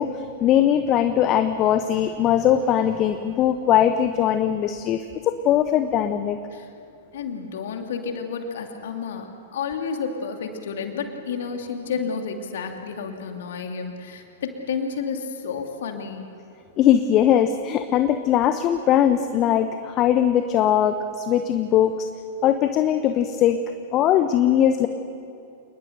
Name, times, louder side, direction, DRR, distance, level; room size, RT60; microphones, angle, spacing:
voice 1, 0.0-6.4 16.8-22.1 22.4-23.6 23.9-24.9, left 10 dB, 35° left, 9 dB, 1.0 m, -20 dB
voice 2, 7.1-16.3, left 5 dB, 60° left, 4 dB, 2.6 m, -31 dB
28.0 x 20.0 x 6.7 m, 2.5 s
figure-of-eight pair, 100°, 0 cm